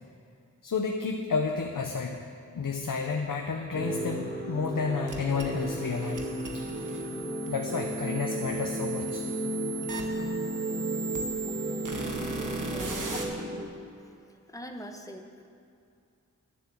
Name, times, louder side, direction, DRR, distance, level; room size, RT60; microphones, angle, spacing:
voice 1, 0.6-2.2 2.5-6.3 6.5-6.6 7.4-9.2 13.1-13.2, left 5 dB, 85° left, 3 dB, 0.7 m, -31 dB
sound 1, 3.7-13.6, right 1 dB, 30° right, 1.6 m, -34 dB
sound 2, 5.1-13.2, right 4 dB, 75° right, 1.3 m, -39 dB
voice 2, 12.6-13.1 14.5-15.5, equal, 10° left, 3 dB, 1.1 m, -42 dB
10.5 x 6.9 x 7.5 m, 2.6 s
wide cardioid pair, 60°, 32 cm